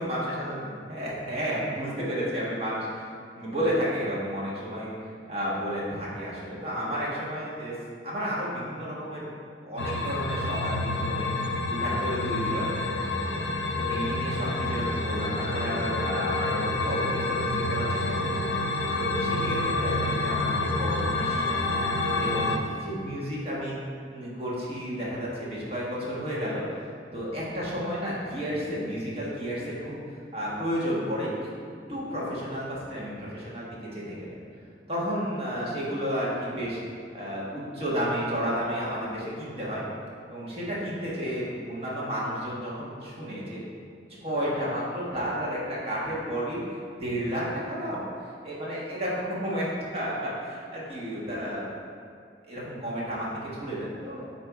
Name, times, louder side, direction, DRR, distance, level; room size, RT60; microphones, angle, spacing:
voice 1, 0.0-3.0 3.4-4.9 5.3-7.8 8.0-9.3 9.7-11.3 11.7-12.7 13.8-18.4 19.0-21.6 22.2-23.8 24.1-26.6 27.1-29.9 30.3-31.3 31.9-34.4 34.9-36.8 37.1-39.8 40.3-43.6 44.2-46.6 46.9-48.0 48.4-51.6 52.5-54.2, equal, 35° right, -6 dB, 1.4 m, -32 dB
sound 1, 9.8-22.6, left 2 dB, 65° left, 0.6 m, -28 dB
8.5 x 2.8 x 4.7 m, 2.2 s
head